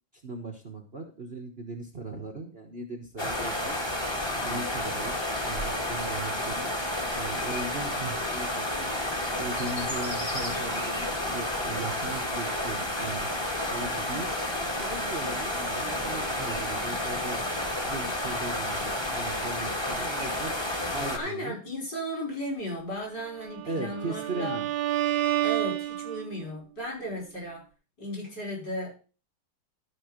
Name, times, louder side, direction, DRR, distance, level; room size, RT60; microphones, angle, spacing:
voice 1, 0.2-3.8 4.3-8.9 9.4-13.3 13.7-14.3 14.7-17.4 17.8-20.6 20.9-21.6 23.6-24.7, right 3 dB, 35° right, 3 dB, 1.4 m, -38 dB
sound 1, 3.2-21.2, left 1 dB, 15° left, 1.6 m, -31 dB
voice 2, 21.1-24.6 25.4-27.6 28.0-29.0, equal, 55° left, -2 dB, 6.2 m, -35 dB
Bowed string instrument, 23.4-26.5, right 14 dB, 75° right, 2.0 m, -30 dB
13.0 x 5.3 x 5.1 m, 0.36 s
omnidirectional pair, 2.1 m